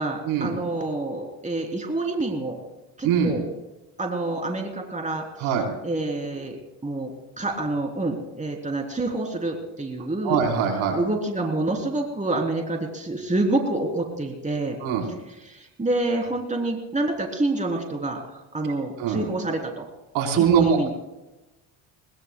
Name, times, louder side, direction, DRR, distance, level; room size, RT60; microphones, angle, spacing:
voice 1, 0.0-2.6 3.0-3.4 4.0-5.6 5.8-6.6 6.8-7.1 7.4-10.4 10.9-14.8 15.0-19.9 20.4-20.9, right 2 dB, 15° right, 1 dB, 3.4 m, -27 dB
voice 2, 10.2-11.0 14.8-15.1 19.0-19.2 20.1-20.9, right 7 dB, 75° right, 2 dB, 4.1 m, -22 dB
22.0 x 20.5 x 2.3 m, 1.0 s
cardioid pair, 100°, 48 cm